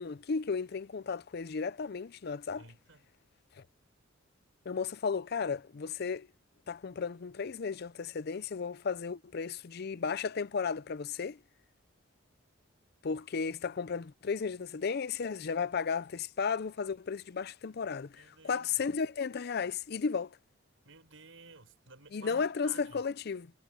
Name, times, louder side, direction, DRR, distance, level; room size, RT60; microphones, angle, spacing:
voice 1, 0.0-2.6 4.7-6.3 6.7-11.4 13.0-20.3 22.1-23.5, left 5 dB, 50° left, 0.5 m, -34 dB
voice 2, 2.6-3.1 18.1-18.9 20.8-23.0, right 3 dB, 70° right, 6.9 m, -54 dB
head